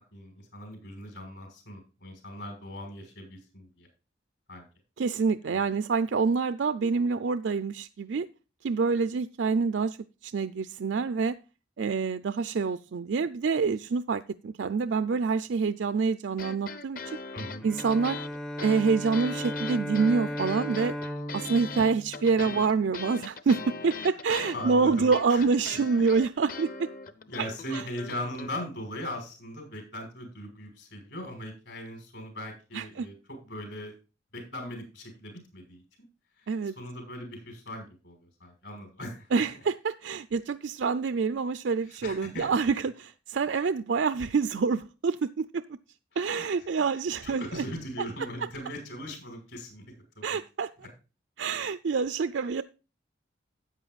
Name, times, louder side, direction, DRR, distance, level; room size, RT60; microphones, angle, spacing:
voice 1, 0.1-3.9 4.5-4.7 5.4-5.7 17.3-17.7 24.0-24.1 24.5-25.5 27.3-33.9 34.3-35.8 36.4-36.5 36.8-39.4 41.8-42.7 46.1-46.5 46.8-46.9 47.2-50.4 50.8-50.9, left 1 dB, 70° left, 3 dB, 6.0 m, -40 dB
voice 2, 5.0-8.3 8.6-10.0 10.2-11.4 11.8-17.2 17.6-18.2 18.6-20.9 21.3-26.9 27.4-27.8 32.7-33.1 36.5-36.8 39.3-45.6 46.2-47.6 48.2-48.3 50.2-50.7 51.4-52.6, right 5 dB, 70° right, 12 dB, 0.4 m, -27 dB
sound 1, 16.3-28.5, left 4 dB, 45° left, 0.8 m, -40 dB
Bowed string instrument, 17.6-22.8, left 1 dB, 5° left, 0.4 m, -36 dB
13.0 x 9.2 x 2.4 m, 0.31 s
head